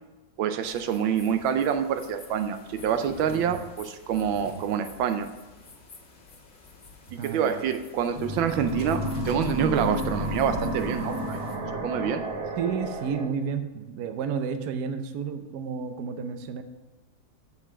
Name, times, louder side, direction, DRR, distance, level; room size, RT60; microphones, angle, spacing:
voice 1, 0.4-5.3 7.1-11.4 11.8-12.2, right 8 dB, 85° right, 8 dB, 1.4 m, -27 dB
sound 1, 0.6-11.6, left 1 dB, 40° left, 1.5 m, -44 dB
voice 2, 7.2-7.6 12.6-16.6, right 6 dB, 65° right, 8 dB, 1.1 m, -31 dB
sound 2, 8.1-13.3, equal, 30° right, 0.5 m, -32 dB
7.2 x 5.6 x 6.0 m, 1.1 s
omnidirectional pair, 2.1 m